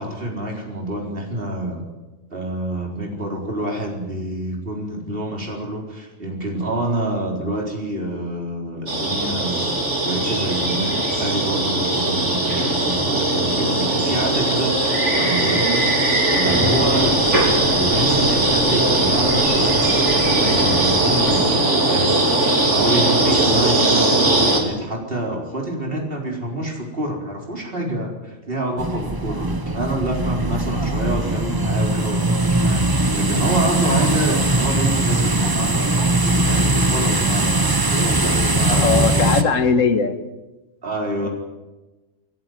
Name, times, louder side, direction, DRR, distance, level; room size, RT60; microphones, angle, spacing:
voice 1, 0.0-1.8 2.3-9.8 10.0-15.9 16.3-39.6 40.8-41.3, right 1 dB, 40° right, 0 dB, 4.4 m, -27 dB
sound 1, 8.9-24.6, right 2 dB, 60° right, 3.9 m, -19 dB
sound 2, 16.4-21.4, equal, 25° left, 6.6 m, -28 dB
sound 3, 28.8-39.4, right 2 dB, 20° right, 1.0 m, -20 dB
voice 2, 38.7-40.2, left 5 dB, 70° left, 8 dB, 1.8 m, -19 dB
28.0 x 12.0 x 9.4 m, 1.1 s
omnidirectional pair, 1.4 m